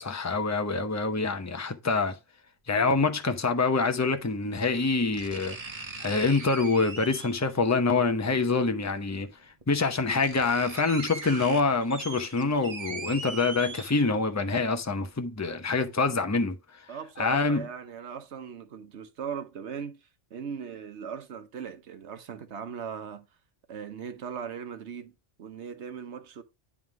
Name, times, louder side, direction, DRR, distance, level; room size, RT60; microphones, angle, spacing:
voice 1, 0.0-2.2 2.7-5.6 6.0-9.3 9.7-16.6 17.2-17.7, left 4 dB, 15° left, 0.7 m, -26 dB
sound 1, 4.3-4.4 5.1-7.5 8.9-9.0 9.6-9.7 9.9-14.4 14.8-14.9, right 3 dB, 35° right, 0.9 m, -40 dB
voice 2, 16.9-23.3 23.7-26.4, right 7 dB, 70° right, 1.2 m, -39 dB
9.4 x 3.7 x 4.7 m
omnidirectional pair, 1.2 m